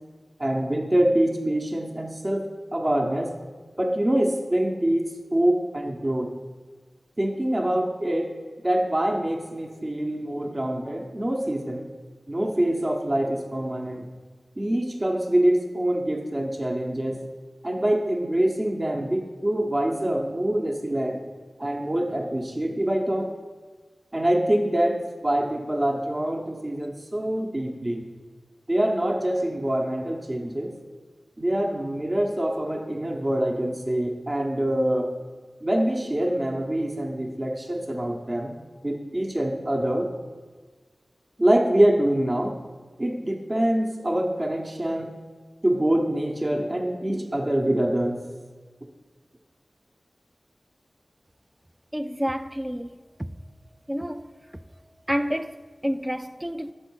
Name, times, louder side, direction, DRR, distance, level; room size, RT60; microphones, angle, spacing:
voice 1, 0.4-3.3 3.8-6.3 7.2-8.3 8.6-11.9 12.3-14.1 14.6-17.2 17.6-21.2 21.6-23.3 24.1-28.1 28.7-30.7 31.4-35.2 35.6-38.6 38.8-40.1 41.4-42.6 43.0-45.1 45.6-48.2, right 1 dB, 35° right, 0.8 m, -25 dB
voice 2, 51.9-53.0 53.9-54.3 55.1-56.7, equal, 10° right, 0.3 m, -29 dB
6.2 x 5.4 x 6.1 m
wide cardioid pair, 55°, 0 cm